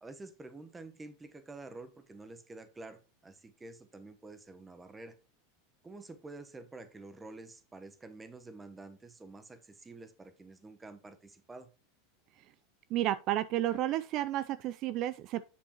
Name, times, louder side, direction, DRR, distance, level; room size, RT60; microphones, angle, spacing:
voice 1, 0.0-5.2 5.8-11.7, right 2 dB, 15° right, 0.9 m, -49 dB
voice 2, 12.9-15.4, right 13 dB, 50° right, 0.3 m, -31 dB
7.2 x 6.9 x 2.9 m
supercardioid pair, 115°, 0 cm